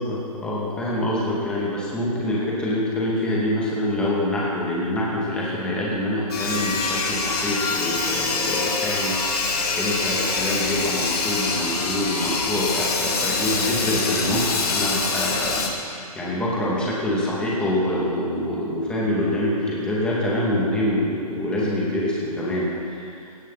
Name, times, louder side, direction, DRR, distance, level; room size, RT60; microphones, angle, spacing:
voice 1, 0.0-9.4 9.7-23.2, left 1 dB, 5° left, -6 dB, 2.4 m, -25 dB
Sawing, 6.3-15.7, left 4 dB, 85° left, 2.9 m, -25 dB
17.5 x 14.5 x 4.2 m, 2.4 s
hypercardioid pair, 165°, 19 cm